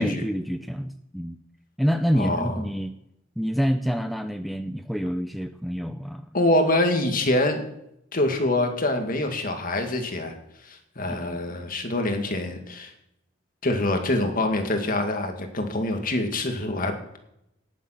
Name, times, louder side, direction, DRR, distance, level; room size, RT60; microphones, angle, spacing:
voice 1, 0.0-1.4 1.8-2.9 3.4-6.3 11.1-11.4, equal, ahead, 8 dB, 0.5 m, -27 dB
voice 2, 2.1-2.6 6.3-7.6 8.1-10.4 10.7-12.9 13.6-17.2, left 1 dB, 50° left, 5 dB, 2.1 m, -25 dB
18.0 x 7.6 x 5.9 m, 0.80 s
head